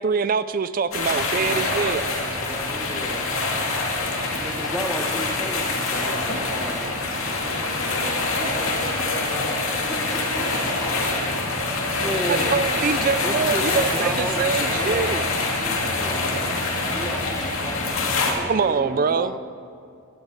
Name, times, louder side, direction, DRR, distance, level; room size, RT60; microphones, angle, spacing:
voice 1, 0.0-2.1 12.3-15.2 18.4-19.4, right 5 dB, 40° right, 13 dB, 0.4 m, -24 dB
sound 1, 0.9-18.3, left 3 dB, 70° left, 2.3 m, -25 dB
voice 2, 2.4-3.3 4.4-6.9 9.9-11.0 11.9-12.6 13.2-16.3 16.9-19.4, equal, ahead, 3 dB, 1.1 m, -34 dB
voice 3, 7.4-10.1, equal, 30° left, -5 dB, 3.3 m, -37 dB
18.0 x 11.5 x 4.9 m, 2.5 s
head